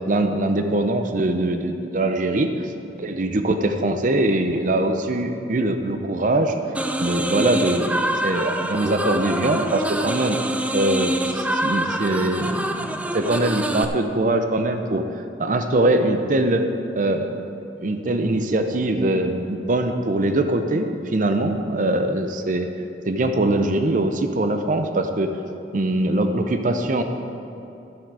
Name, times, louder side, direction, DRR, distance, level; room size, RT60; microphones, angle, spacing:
voice 1, 0.0-2.7 3.0-6.5 7.0-10.4 10.7-15.0 15.4-16.6 16.9-17.3 17.8-22.7 23.1-25.3 25.7-27.0, right 1 dB, 45° right, 7 dB, 0.6 m, -22 dB
sound 1, 6.7-13.9, right 1 dB, 10° right, 0.3 m, -25 dB
13.0 x 7.7 x 4.7 m, 2.8 s
head